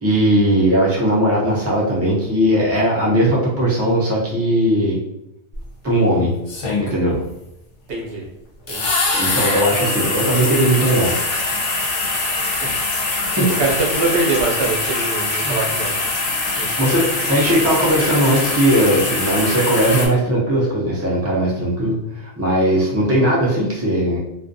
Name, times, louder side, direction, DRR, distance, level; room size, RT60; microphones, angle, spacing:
voice 1, 0.0-5.0 5.8-6.3 6.8-7.2 9.1-11.2 13.3-13.7 15.4-15.6 16.8-24.2, right 1 dB, 25° right, -5 dB, 0.3 m, -18 dB
sound 1, 5.5-5.6 6.5-7.2 8.7-20.1, left 3 dB, 60° left, 0.8 m, -23 dB
voice 2, 7.9-8.3 8.7-8.9 12.6-12.8 13.2-16.0 16.5-16.7 17.2-17.3, right 3 dB, 60° right, -2 dB, 0.8 m, -23 dB
2.4 x 2.2 x 2.5 m, 0.85 s
omnidirectional pair, 1.2 m